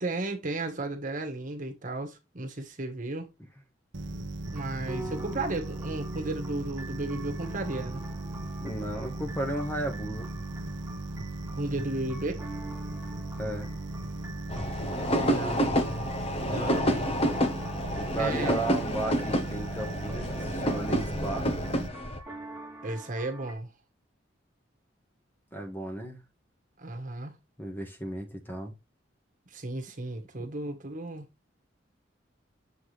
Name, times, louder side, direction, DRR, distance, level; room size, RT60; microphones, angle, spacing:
voice 1, 0.0-3.3 4.5-8.1 11.5-12.4 15.1-16.1 16.4-17.1 18.2-18.5 22.8-23.7 26.8-27.4 29.5-31.3, right 2 dB, 45° right, 1.4 m, -34 dB
sound 1, 3.9-21.9, right 2 dB, 70° right, 0.8 m, -37 dB
sound 2, 4.4-23.5, right 2 dB, 10° right, 3.0 m, -46 dB
voice 2, 8.6-10.3 13.4-13.7 17.9-21.5 25.5-26.2 27.6-28.7, right 2 dB, 10° left, 1.5 m, -34 dB
sound 3, 14.5-22.2, equal, 30° left, 1.2 m, -29 dB
7.7 x 4.6 x 3.3 m
head